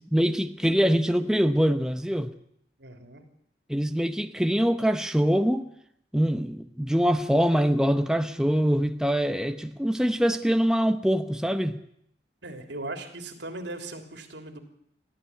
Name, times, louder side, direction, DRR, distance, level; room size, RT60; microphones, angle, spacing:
voice 1, 0.0-2.3 3.7-5.7 6.1-11.8, equal, 5° right, 7 dB, 0.9 m, -24 dB
voice 2, 2.8-3.2 12.4-14.6, right 2 dB, 90° right, 6 dB, 3.3 m, -38 dB
23.0 x 15.0 x 9.7 m, 0.73 s
head